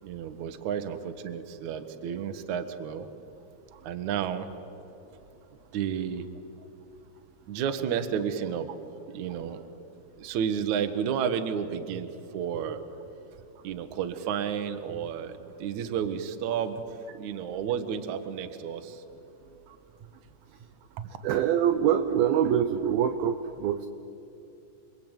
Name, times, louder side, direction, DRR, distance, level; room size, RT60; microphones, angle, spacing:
voice 1, 0.0-3.1 3.8-4.5 5.7-6.3 7.5-8.7 9.1-9.6 10.2-12.8 13.6-16.8 17.1-19.0 21.0-21.2, right 8 dB, 70° right, 8 dB, 1.8 m, -31 dB
voice 2, 21.2-23.9, right 9 dB, 85° right, 8 dB, 2.1 m, -24 dB
28.0 x 23.5 x 9.1 m, 2.9 s
omnidirectional pair, 5.3 m